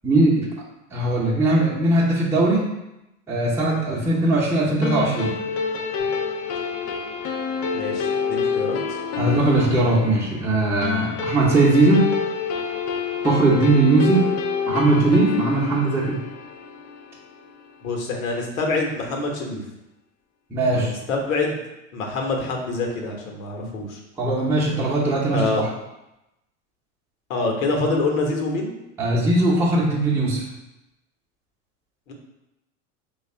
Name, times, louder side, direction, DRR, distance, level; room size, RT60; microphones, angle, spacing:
voice 1, 0.0-0.5 0.9-2.7 3.3-5.4 9.2-12.1 13.2-14.3 14.7-16.2 20.5-20.9 23.6-23.7 24.2-25.7 29.0-30.5, right 2 dB, 5° right, -6 dB, 0.8 m, -19 dB
sound 1, 4.8-17.6, left 5 dB, 40° left, 0.5 m, -27 dB
voice 2, 7.7-9.0 17.8-19.6 20.7-21.6 21.9-24.0 25.3-25.6 27.3-28.7 32.1-32.2, left 3 dB, 75° left, 1 dB, 1.0 m, -26 dB
3.1 x 2.4 x 4.2 m, 0.92 s
hypercardioid pair, 95°, 41 cm